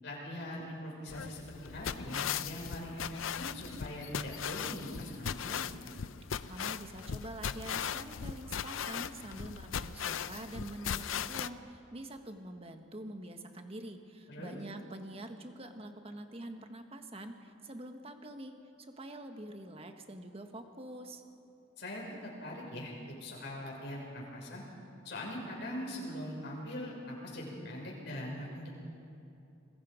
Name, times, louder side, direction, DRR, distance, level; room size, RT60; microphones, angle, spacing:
voice 1, 0.0-5.6 14.3-14.5 21.8-24.6 25.0-28.8, left 1 dB, 60° left, -2 dB, 6.1 m, -42 dB
sound 1, 1.1-11.5, left 8 dB, 85° left, 0.6 m, -38 dB
voice 2, 6.5-18.5 18.9-21.2, right 1 dB, 30° right, 6 dB, 1.4 m, -45 dB
27.0 x 22.0 x 5.1 m, 2.7 s
head